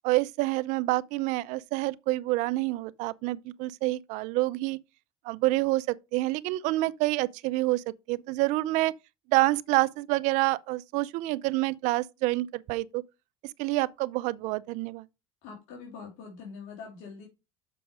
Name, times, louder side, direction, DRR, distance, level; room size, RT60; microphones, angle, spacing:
voice 1, 0.0-4.8 5.2-8.9 9.3-13.0 13.6-15.1, right 19 dB, 70° right, 0.5 m, -27 dB
voice 2, 15.4-17.3, left 5 dB, 70° left, 3.2 m, -43 dB
7.0 x 6.0 x 4.8 m
supercardioid pair, 95°, 13 cm